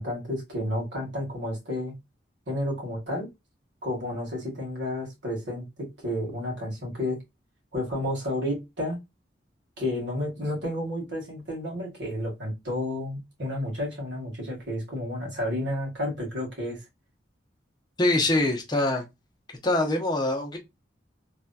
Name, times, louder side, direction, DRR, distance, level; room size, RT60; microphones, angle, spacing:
voice 1, 0.0-1.9 2.5-3.3 3.8-7.2 7.7-9.0 9.8-16.8, left 1 dB, 75° right, 1.8 m, -31 dB
voice 2, 18.0-19.1 19.6-20.6, left 2 dB, 25° left, 0.6 m, -24 dB
3.3 x 2.7 x 2.2 m
head